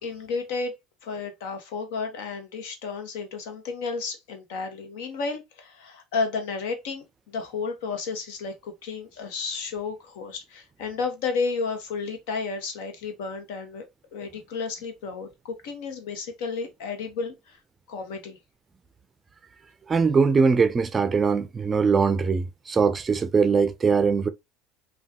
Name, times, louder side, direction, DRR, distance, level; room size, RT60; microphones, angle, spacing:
voice 1, 0.0-0.7 1.0-13.8 14.1-17.6 17.9-18.4, left 4 dB, 85° left, 0.9 m, -32 dB
voice 2, 19.9-24.3, right 5 dB, 25° right, 0.4 m, -21 dB
3.5 x 2.3 x 2.7 m
supercardioid pair, 105°, 0 cm